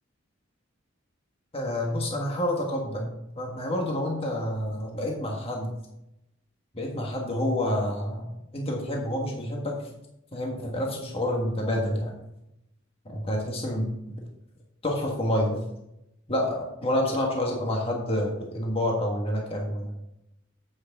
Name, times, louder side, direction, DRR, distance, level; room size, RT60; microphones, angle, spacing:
voice 1, 1.5-5.7 6.7-8.3 8.5-9.7 10.3-12.2 13.0-14.2 14.8-15.6 16.3-19.9, left 1 dB, 30° left, -1 dB, 1.5 m, -28 dB
9.3 x 8.3 x 3.6 m, 0.83 s
head